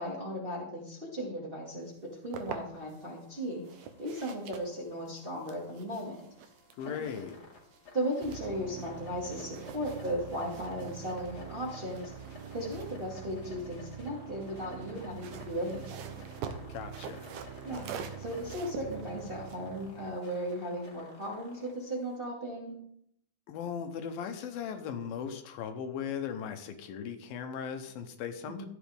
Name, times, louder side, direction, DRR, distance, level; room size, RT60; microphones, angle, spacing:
voice 1, 0.0-3.6 4.0-6.2 6.8-7.0 7.9-12.1 12.5-16.0 17.6-22.8 28.6-28.7, equal, 20° right, -4 dB, 1.6 m, -36 dB
sound 1, 1.9-3.1 3.6-9.0 9.3-14.0 15.0-20.5, right 7 dB, 70° right, 2.3 m, -46 dB
sound 2, 3.0-22.2, left 3 dB, 30° left, 2.2 m, -54 dB
voice 2, 6.8-7.4 16.7-17.3 23.5-28.7, left 7 dB, 80° left, 7 dB, 2.7 m, -38 dB
sound 3, 8.2-20.2, right 9 dB, 90° right, 2.7 m, -46 dB
14.5 x 10.0 x 3.5 m, 0.73 s
omnidirectional pair, 4.2 m